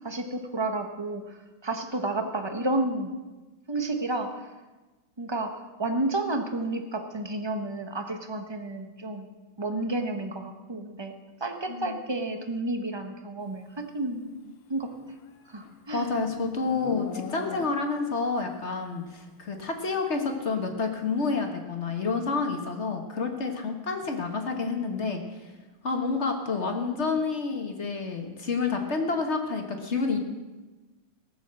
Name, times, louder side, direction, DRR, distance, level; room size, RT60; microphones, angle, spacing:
voice 1, 0.0-1.2 1.6-3.1 3.7-4.4 5.2-9.3 9.6-11.1 11.4-14.9 15.5-16.1, right 2 dB, 20° right, 5 dB, 0.7 m, -31 dB
Livestock farm animals working animals, 14.9-18.1, left 6 dB, 80° left, 1.8 m, -41 dB
voice 2, 15.9-25.5 25.8-30.2, left 4 dB, 35° left, 4 dB, 1.5 m, -29 dB
18.0 x 7.1 x 7.6 m, 1.2 s
omnidirectional pair, 2.3 m